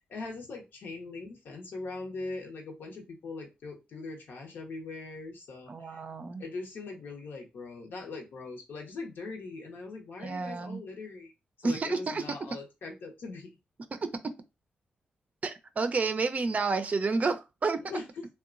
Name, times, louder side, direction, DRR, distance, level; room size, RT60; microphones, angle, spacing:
voice 1, 0.1-6.0 6.4-11.3 11.6-13.5 17.8-18.2, left 3 dB, 75° left, 0.8 m, -41 dB
voice 2, 5.7-6.4 10.2-10.8 11.6-12.4 13.9-14.3 15.4-17.8, right 4 dB, 45° right, 0.4 m, -30 dB
2.8 x 2.2 x 2.5 m
cardioid pair, 60°, 4 cm